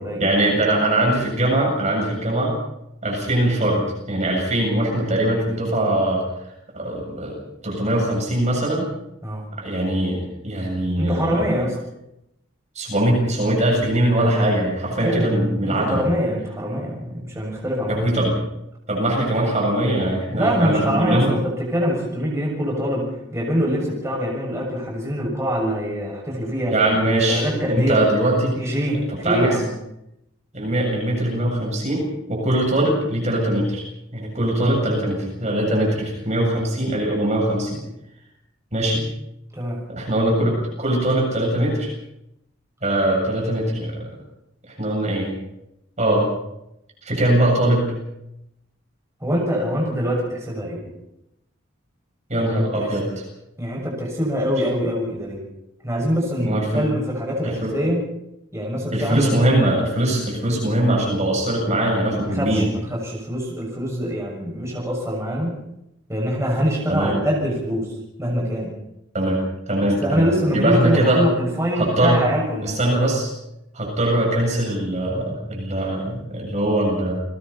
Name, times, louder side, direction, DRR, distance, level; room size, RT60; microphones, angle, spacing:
voice 1, 0.2-2.5 3.0-6.2 6.7-7.3 7.6-8.9 9.6-11.4 12.7-16.0 17.9-18.3 18.9-21.4 26.7-27.4 27.7-28.6 29.2-29.5 30.5-33.8 34.1-37.8 38.7-39.0 39.9-40.5 40.8-41.9 42.8-44.1 44.7-45.3 46.0-46.2 47.0-47.9 52.3-53.0 56.4-56.9 57.4-57.7 58.9-62.7 66.9-67.1 69.1-69.4 69.7-71.2 71.8-72.2 72.6-73.3 73.7-77.2, right 1 dB, 40° right, -1 dB, 7.7 m, -21 dB
voice 2, 11.0-11.8 15.0-18.1 20.3-26.7 27.3-28.1 28.5-29.7 39.5-39.8 49.2-50.8 52.3-52.9 53.6-55.4 55.8-58.1 58.5-59.3 62.3-65.6 66.1-67.9 68.2-68.7 70.0-72.8, equal, 15° right, -2 dB, 6.5 m, -24 dB
30.0 x 21.5 x 4.3 m, 0.83 s
head